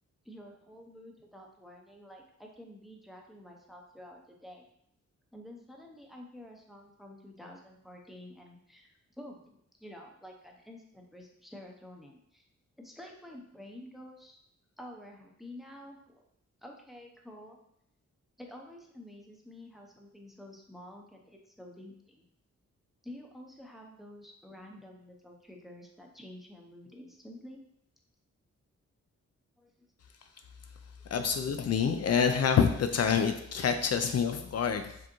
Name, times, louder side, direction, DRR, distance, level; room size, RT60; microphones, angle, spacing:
voice 1, 0.2-4.6 5.3-9.4 9.8-12.4 12.8-14.4 14.8-16.2 16.6-17.6 18.4-22.2 23.0-27.6 29.6-29.7, left 1 dB, ahead, 1 dB, 0.7 m, -49 dB
voice 2, 31.1-34.9, left 7 dB, 60° left, 7 dB, 0.4 m, -27 dB
4.9 x 3.5 x 3.0 m, 0.73 s
wide cardioid pair, 110°, 29 cm